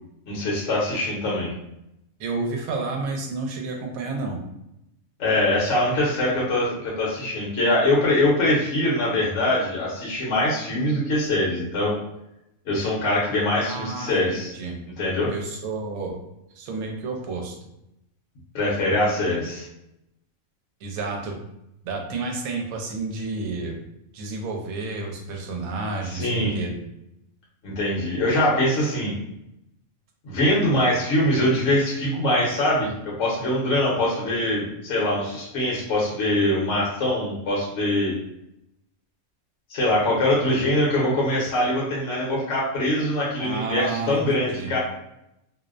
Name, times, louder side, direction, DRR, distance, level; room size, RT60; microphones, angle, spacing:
voice 1, 0.3-1.5 5.2-12.0 12.7-14.5 15.0-15.3 18.5-19.7 26.1-26.5 27.6-29.1 30.2-38.1 39.7-44.8, left 1 dB, 60° left, -5 dB, 1.0 m, -23 dB
voice 2, 2.2-4.4 13.7-14.8 15.3-16.2 16.5-17.6 20.8-21.4 21.8-23.8 24.1-26.8 43.4-44.7, right 3 dB, 80° right, 2 dB, 1.0 m, -30 dB
2.6 x 2.0 x 2.3 m, 0.83 s
omnidirectional pair, 1.5 m